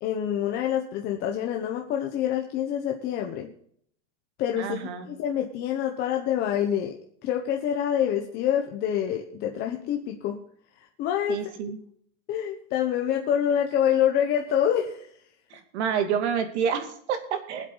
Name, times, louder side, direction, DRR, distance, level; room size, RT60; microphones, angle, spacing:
voice 1, 0.0-3.5 4.4-4.8 5.0-7.0 7.2-10.4 11.0-11.5 12.3-15.1, left 9 dB, 25° left, 2 dB, 1.1 m, -26 dB
voice 2, 4.6-5.1 11.3-11.8 15.5-17.7, right 7 dB, 65° right, 7 dB, 2.7 m, -28 dB
21.5 x 8.0 x 4.0 m, 0.63 s
supercardioid pair, 175°, 36 cm